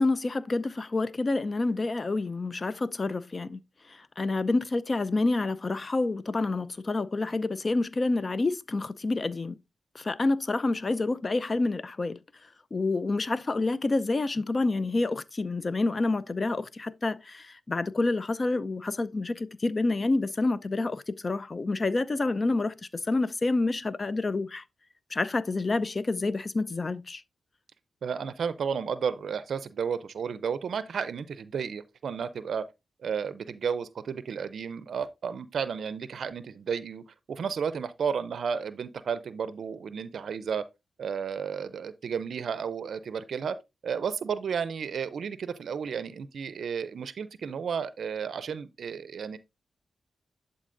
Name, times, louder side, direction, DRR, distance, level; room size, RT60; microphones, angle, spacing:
voice 1, 0.0-3.6 4.2-9.6 10.0-12.2 12.7-22.7 23.1-24.6 25.1-27.2, left 3 dB, 45° left, 0.5 m, -28 dB
voice 2, 28.0-32.6 33.0-40.6 41.0-43.6 43.8-49.4, right 6 dB, 75° right, 0.5 m, -32 dB
11.0 x 4.0 x 2.5 m
cardioid pair, 50°, 0 cm